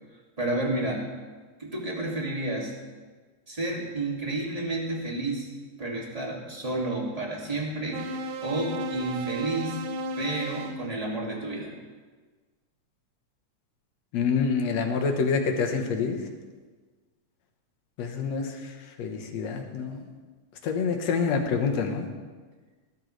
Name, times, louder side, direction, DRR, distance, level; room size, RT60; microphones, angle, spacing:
voice 1, 0.4-1.0 1.6-2.7 3.5-5.5 5.8-8.0 8.4-9.8 10.2-11.7, right 2 dB, 15° right, -2 dB, 2.1 m, -30 dB
sound 1, 7.9-10.8, right 1 dB, 75° right, 2.2 m, -34 dB
voice 2, 14.1-16.3 18.0-20.0 20.6-22.1, left 5 dB, 65° left, 4 dB, 2.3 m, -27 dB
18.0 x 13.0 x 3.3 m, 1.4 s
omnidirectional pair, 3.4 m